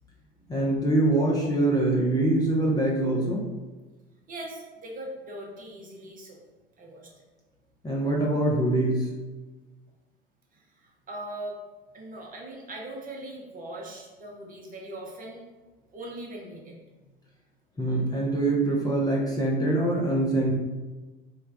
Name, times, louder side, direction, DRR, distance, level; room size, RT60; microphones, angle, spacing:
voice 1, 0.5-3.4 7.8-9.1 17.8-20.5, right 2 dB, 15° left, -3 dB, 0.7 m, -24 dB
voice 2, 4.3-6.4 6.8-7.2 10.5-11.6 11.9-15.4 15.9-16.7, right 1 dB, 30° right, -1 dB, 0.8 m, -40 dB
3.3 x 2.3 x 3.4 m, 1.2 s
hypercardioid pair, 70°, 29 cm